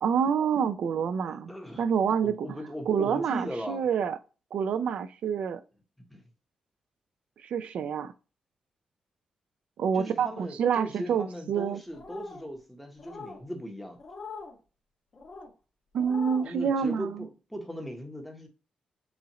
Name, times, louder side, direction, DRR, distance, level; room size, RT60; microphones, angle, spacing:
voice 1, 0.0-1.5 1.8-2.6 2.9-4.2 4.5-5.6 7.4-8.1 9.8-11.8 15.9-17.2, right 7 dB, 75° right, 0.4 m, -27 dB
voice 2, 1.2-1.8 2.2-3.8 6.0-6.2 9.9-14.0 16.4-18.5, equal, ahead, 1.0 m, -38 dB
sound 1, 11.9-12.5 13.0-13.4 14.0-14.5 15.1-15.5 16.0-16.5, left 4 dB, 40° left, 1.5 m, -42 dB
7.0 x 2.5 x 2.9 m
wide cardioid pair, 140°, 2 cm